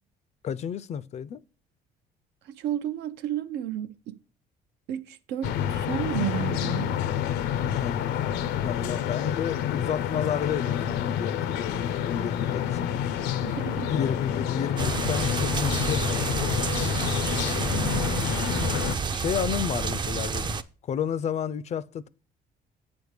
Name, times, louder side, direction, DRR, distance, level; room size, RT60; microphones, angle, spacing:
voice 1, 0.4-1.4 7.7-8.4 8.6-12.9 13.9-16.9 19.1-20.6 20.9-22.1, left 8 dB, 40° left, 0.4 m, -31 dB
voice 2, 2.4-4.2 4.9-7.0 13.4-13.9 17.7-18.3, right 11 dB, 85° right, 0.6 m, -32 dB
sound 1, 5.4-19.0, left 9 dB, 90° left, 0.6 m, -28 dB
sound 2, 14.8-20.6, right 5 dB, 25° right, 0.4 m, -29 dB
8.0 x 3.5 x 6.4 m
cardioid pair, 110°, 17 cm